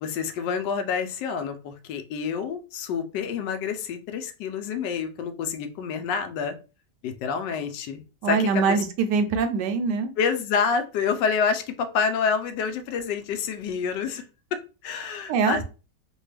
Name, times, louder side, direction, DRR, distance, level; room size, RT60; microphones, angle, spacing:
voice 1, 0.0-6.6 7.0-8.8 10.2-14.2 14.5-15.6, left 6 dB, 85° left, 8 dB, 1.2 m, -28 dB
voice 2, 8.2-10.1 15.3-15.6, right 5 dB, 80° right, 8 dB, 1.2 m, -23 dB
3.3 x 2.2 x 3.2 m, 0.33 s
omnidirectional pair, 1.8 m